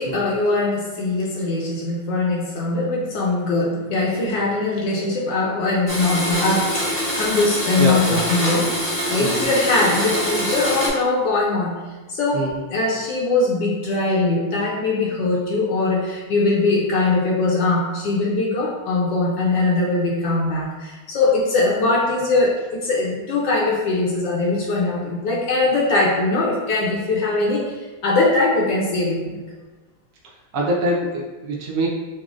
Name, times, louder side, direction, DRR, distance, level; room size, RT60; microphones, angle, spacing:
voice 1, 0.0-11.8 12.1-27.8 28.0-29.4, left 3 dB, 75° left, -3 dB, 1.2 m, -21 dB
Domestic sounds home sounds, 5.9-10.9, equal, 30° left, 0.8 m, -24 dB
voice 2, 7.8-8.2 9.2-9.5 12.3-12.6 30.5-31.9, right 1 dB, 85° right, -2 dB, 0.8 m, -24 dB
6.0 x 2.0 x 2.4 m, 1.2 s
omnidirectional pair, 2.2 m